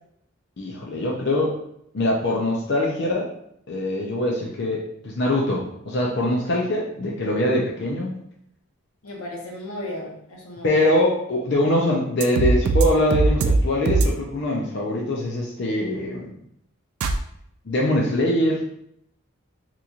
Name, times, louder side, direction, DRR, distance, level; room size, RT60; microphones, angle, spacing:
voice 1, 0.6-1.5 1.9-3.3 3.7-8.2 10.6-16.3 17.7-18.6, left 1 dB, 50° left, -3 dB, 0.5 m, -23 dB
voice 2, 9.0-11.0, left 1 dB, 85° left, -1 dB, 0.9 m, -35 dB
sound 1, 12.2-12.9 13.1-13.6 13.9-14.1 17.0-17.2, right 3 dB, 80° right, 0.4 m, -19 dB
4.0 x 2.9 x 2.4 m, 0.72 s
head